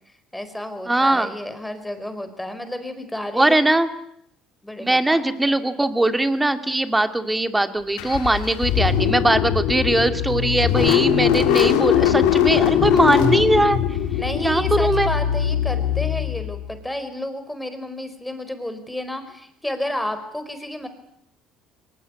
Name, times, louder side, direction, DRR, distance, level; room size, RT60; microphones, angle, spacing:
voice 1, 0.3-3.6 4.6-5.5 14.2-20.9, left 1 dB, 5° left, 9 dB, 4.8 m, -31 dB
voice 2, 0.9-1.3 3.3-3.9 4.8-13.8 14.4-15.1, right 2 dB, 10° right, 9 dB, 2.3 m, -20 dB
Car / Engine starting, 8.0-16.7, left 10 dB, 80° left, 3.2 m, -21 dB
23.5 x 19.5 x 9.8 m, 0.73 s
supercardioid pair, 85°, 0 cm